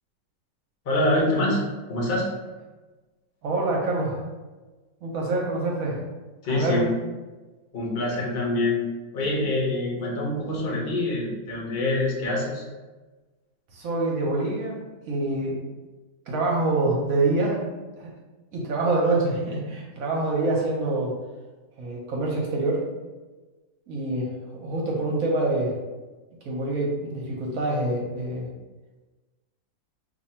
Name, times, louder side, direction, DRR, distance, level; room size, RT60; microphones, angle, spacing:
voice 1, 0.9-1.6 1.9-2.3 6.4-6.9 7.7-8.8 9.1-12.6, left 2 dB, 50° left, -3 dB, 0.7 m, -25 dB
voice 2, 3.4-4.2 5.0-6.0 6.5-6.9 13.7-14.8 15.1-15.6 16.3-17.6 18.0-18.1 18.5-21.2 21.8-22.8 23.9-25.7 26.4-28.5, right 2 dB, 60° right, -2 dB, 1.0 m, -26 dB
2.7 x 2.6 x 4.2 m, 1.2 s
omnidirectional pair, 2.1 m